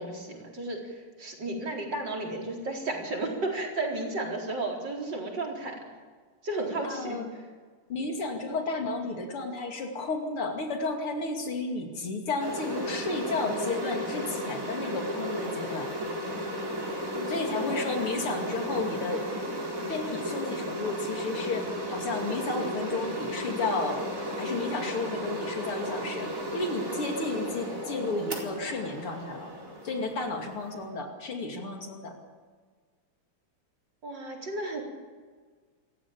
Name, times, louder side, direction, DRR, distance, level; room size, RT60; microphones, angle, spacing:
voice 1, 0.0-5.8 6.4-7.2 17.1-18.1 34.0-34.8, right 2 dB, 50° right, 0 dB, 4.8 m, -33 dB
voice 2, 6.8-7.3 7.9-15.9 17.3-19.3 19.9-29.5 29.8-32.1, left 3 dB, 75° left, 2 dB, 3.5 m, -32 dB
sound 1, 12.4-30.9, equal, 35° right, 4.6 m, -34 dB
28.0 x 14.5 x 8.9 m, 1.5 s
omnidirectional pair, 2.4 m